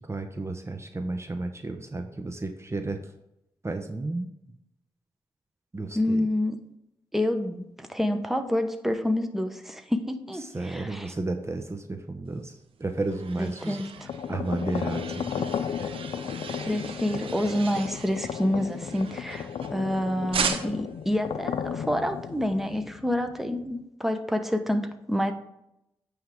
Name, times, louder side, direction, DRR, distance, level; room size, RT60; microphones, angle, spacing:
voice 1, 0.0-3.0 3.6-4.3 5.7-6.3 10.4-13.8 14.3-15.5, right 2 dB, 30° right, 6 dB, 0.8 m, -32 dB
voice 2, 5.9-6.6 7.1-11.1 13.4-14.1 16.6-25.3, left 1 dB, 5° right, 7 dB, 1.0 m, -28 dB
sound 1, 12.6-19.9 20.3-21.0, right 6 dB, 75° right, 0.8 m, -37 dB
sound 2, 13.9-23.7, left 7 dB, 65° left, 0.4 m, -34 dB
9.1 x 3.5 x 5.0 m, 0.83 s
supercardioid pair, 45°, 9 cm